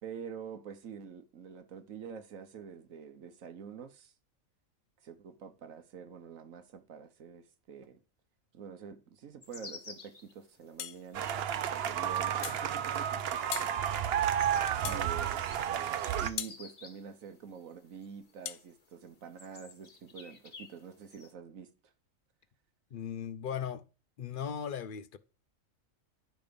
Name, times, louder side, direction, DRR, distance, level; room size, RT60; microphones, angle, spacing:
voice 1, 0.0-4.1 5.0-8.0 8.5-11.3 11.7-13.9 14.8-15.5 15.7-21.7, right 7 dB, 80° right, 1.4 m, -47 dB
sound 1, 9.4-21.3, left 4 dB, 40° left, 1.2 m, -54 dB
sound 2, 10.8-11.0 12.4-12.7 13.5-13.8 14.8-15.1 16.4-16.6 18.5-18.6, left 11 dB, 80° left, 1.0 m, -38 dB
sound 3, 11.1-16.3, right 9 dB, 60° right, 0.7 m, -31 dB
voice 2, 22.9-23.8 24.2-25.2, left 8 dB, 55° left, 0.6 m, -37 dB
10.0 x 5.2 x 5.2 m
omnidirectional pair, 1.4 m